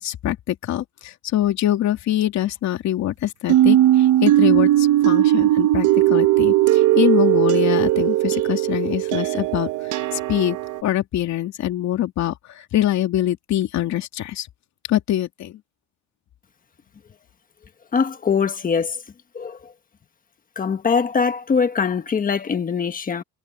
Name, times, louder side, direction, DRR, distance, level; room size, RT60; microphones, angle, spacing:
voice 1, 0.0-14.5 14.9-15.6, left 13 dB, 65° left, 2.8 m, -24 dB
sound 1, 3.5-10.8, right 14 dB, 80° right, 1.0 m, -18 dB
voice 2, 17.9-19.0 19.3-19.7 20.5-23.2, left 6 dB, 30° left, 1.4 m, -22 dB
cardioid pair, 155°, 30 cm